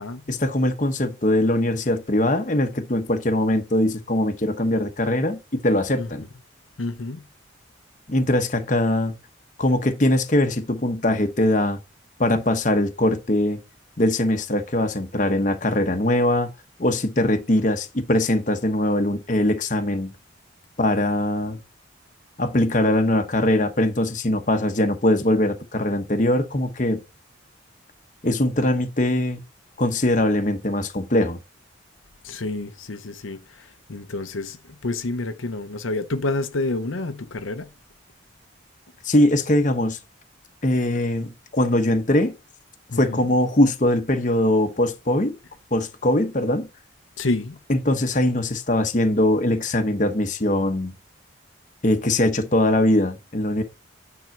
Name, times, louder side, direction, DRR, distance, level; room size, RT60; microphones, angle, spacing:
voice 1, 0.3-6.2 8.1-9.1 9.6-11.8 12.2-13.6 14.0-16.5 16.8-20.1 20.8-21.6 22.4-27.0 28.2-29.4 29.8-31.4 39.0-40.0 40.6-42.4 42.9-45.4 45.7-46.7 47.7-50.9 51.8-53.6, left 1 dB, 40° left, 1.0 m, -21 dB
voice 2, 6.8-7.2 32.2-37.7 42.9-43.3 47.2-47.6, left 2 dB, 85° left, 0.9 m, -29 dB
9.2 x 3.7 x 5.8 m
head